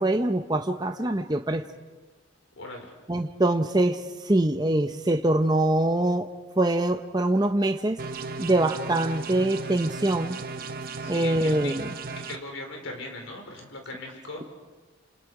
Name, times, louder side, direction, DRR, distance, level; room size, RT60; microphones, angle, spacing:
voice 1, 0.0-1.6 3.1-6.3 6.6-8.0 8.4-10.4 11.1-11.9, right 1 dB, 20° right, 0.8 m, -24 dB
voice 2, 2.6-2.9 11.0-11.7 12.3-14.4, left 2 dB, 85° left, 4.8 m, -39 dB
sound 1, 8.0-12.4, right 3 dB, 50° right, 1.1 m, -36 dB
28.0 x 27.5 x 4.9 m
head